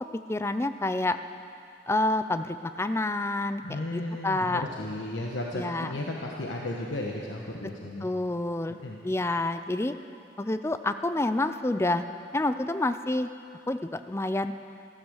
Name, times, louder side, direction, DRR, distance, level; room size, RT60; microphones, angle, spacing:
voice 1, 0.3-1.2 1.9-3.6 3.9-4.6 5.5-6.0 8.0-8.8 9.0-9.9 10.4-12.0 12.3-13.3 13.7-14.5, left 2 dB, 15° left, 10 dB, 0.4 m, -28 dB
voice 2, 3.6-8.1 8.7-9.0, left 1 dB, 80° left, -1 dB, 1.2 m, -34 dB
14.5 x 13.5 x 6.4 m, 2.5 s
head